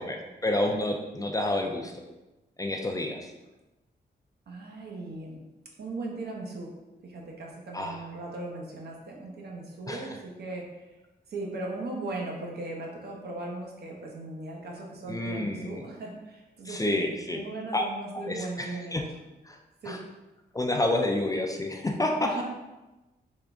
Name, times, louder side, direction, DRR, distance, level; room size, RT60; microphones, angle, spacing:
voice 1, 0.0-1.9 2.6-3.3 7.7-8.0 9.9-10.2 15.1-15.8 16.7-17.4 17.7-17.8 18.2-19.0 19.5-19.6 19.9-20.0 20.5-22.3, left 1 dB, 20° left, 2 dB, 0.4 m, -29 dB
voice 2, 4.5-5.4 5.8-6.7 7.0-10.9 11.3-17.0 17.3-18.9 19.8-20.0 22.2-22.4, right 2 dB, 65° right, -1 dB, 0.8 m, -38 dB
3.7 x 2.5 x 3.4 m, 1.1 s
cardioid pair, 95°, 18 cm